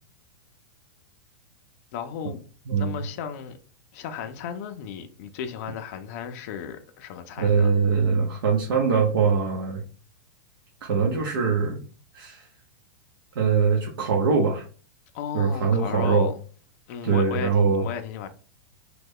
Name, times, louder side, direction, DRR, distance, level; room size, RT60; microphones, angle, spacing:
voice 1, 1.9-2.4 2.8-3.6 3.9-7.8 15.1-16.3 16.9-18.3, left 8 dB, 40° left, 0.4 m, -35 dB
voice 2, 7.4-9.8 10.8-11.8 12.1-12.5 13.4-14.6 15.3-16.3 17.0-17.9, right 5 dB, 90° right, 0.8 m, -22 dB
3.1 x 2.2 x 3.6 m
supercardioid pair, 170°, 12 cm